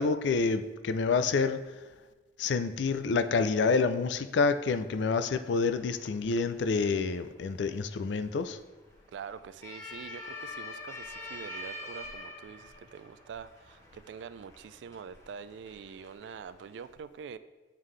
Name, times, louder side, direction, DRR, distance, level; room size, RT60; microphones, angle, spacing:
voice 1, 0.0-1.8 2.4-8.6, left 4 dB, 70° left, 11 dB, 0.4 m, -28 dB
sound 1, 5.6-16.9, left 2 dB, 15° left, 1.0 m, -46 dB
voice 2, 9.1-17.4, right 6 dB, 75° right, 14 dB, 0.3 m, -45 dB
9.0 x 3.7 x 3.2 m, 1.3 s
head